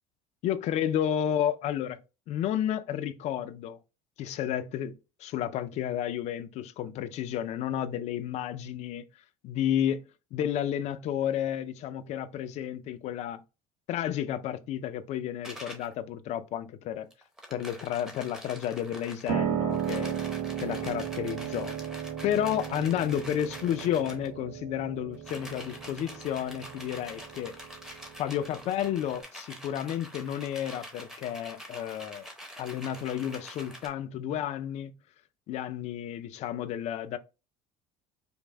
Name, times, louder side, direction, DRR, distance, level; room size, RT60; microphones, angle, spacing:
voice 1, 0.4-2.0 2.3-3.8 4.2-9.0 9.4-10.0 10.3-13.4 13.9-17.1 17.5-20.2 20.6-21.8 22.2-27.6 28.2-32.3 32.6-34.9 35.5-37.2, left 10 dB, 40° left, 0.4 m, -31 dB
sound 1, 15.4-15.9 17.1-19.4 19.7-24.3 25.1-33.9, equal, 5° right, 0.6 m, -46 dB
Piano, 19.3-29.2, right 9 dB, 75° right, 0.8 m, -35 dB
5.2 x 2.1 x 3.3 m
cardioid pair, 155°, 17 cm